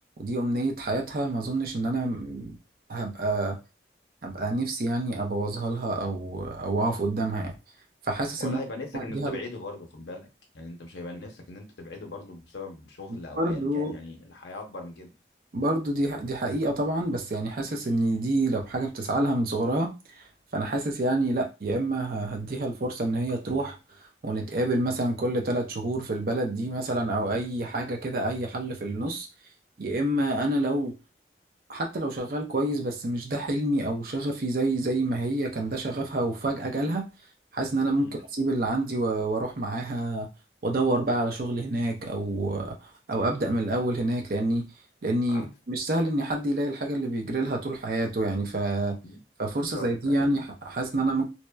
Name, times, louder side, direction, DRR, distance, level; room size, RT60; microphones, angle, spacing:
voice 1, 0.2-2.5 2.9-3.6 4.2-7.5 8.0-8.6 8.9-9.4 13.4-13.9 15.5-19.9 20.5-23.8 24.2-29.3 29.8-30.9 31.7-37.1 37.5-40.3 40.6-44.7 45.0-49.0 49.4-51.2, right 2 dB, 55° right, 2 dB, 0.5 m, -28 dB
voice 2, 8.4-10.3 10.5-15.1 38.0-38.2 45.3-45.5 49.0-49.2 49.6-50.2, left 3 dB, 80° left, 2 dB, 0.7 m, -40 dB
2.8 x 2.1 x 2.2 m, 0.28 s
head